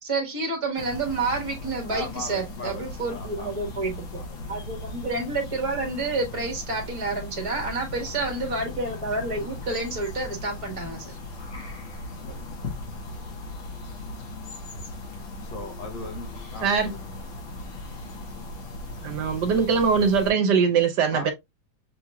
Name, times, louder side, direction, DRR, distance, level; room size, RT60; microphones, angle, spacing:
voice 1, 0.0-3.9 4.5-11.2, right 3 dB, 20° right, 1.3 m, -29 dB
sound 1, 0.8-20.3, left 2 dB, 85° left, 2.0 m, -38 dB
voice 2, 1.9-4.4 10.6-11.1 12.2-12.4 15.3-17.2 21.1-21.3, left 3 dB, 70° left, 1.6 m, -39 dB
voice 3, 19.0-21.3, right 6 dB, 65° right, 1.3 m, -21 dB
6.2 x 3.0 x 2.3 m
omnidirectional pair, 2.1 m